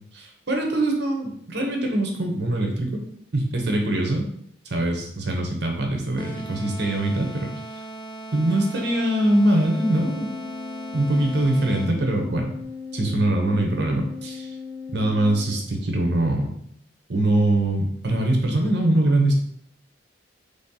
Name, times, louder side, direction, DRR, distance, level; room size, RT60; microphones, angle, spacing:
voice 1, 0.1-3.0 3.3-4.3 4.7-7.8 8.3-10.3 10.9-12.5 12.9-14.5 14.9-16.5 17.1-19.3, right 1 dB, 60° right, 2 dB, 0.8 m, -23 dB
sound 1, 6.2-12.1, right 2 dB, 25° left, 0.5 m, -38 dB
Organ, 9.6-16.1, left 5 dB, 85° left, 1.4 m, -38 dB
3.3 x 2.8 x 3.7 m, 0.70 s
head